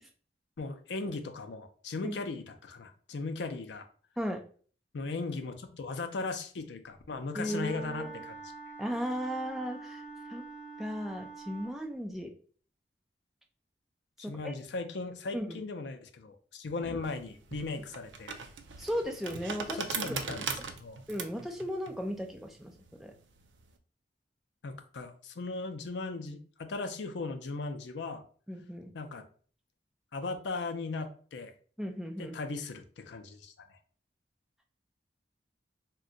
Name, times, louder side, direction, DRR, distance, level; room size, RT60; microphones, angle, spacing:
voice 1, 0.6-3.9 4.9-8.3 14.2-18.3 19.7-20.4 20.8-21.0 24.6-28.2 28.9-29.2 30.1-31.5 32.2-33.5, left 3 dB, 75° left, 7 dB, 0.5 m, -37 dB
Wind instrument woodwind instrument, 7.4-11.8, right 3 dB, 20° left, 0.7 m, -46 dB
voice 2, 7.4-8.2 8.8-10.0 10.3-10.4 10.8-12.3 14.2-14.5 15.3-15.6 18.8-19.8 20.1-20.4 21.1-23.1 28.5-28.9 31.8-32.4, equal, ahead, 2 dB, 0.3 m, -36 dB
sound 1, 17.0-23.7, right 5 dB, 80° right, 0.4 m, -40 dB
2.6 x 2.2 x 3.7 m, 0.43 s
head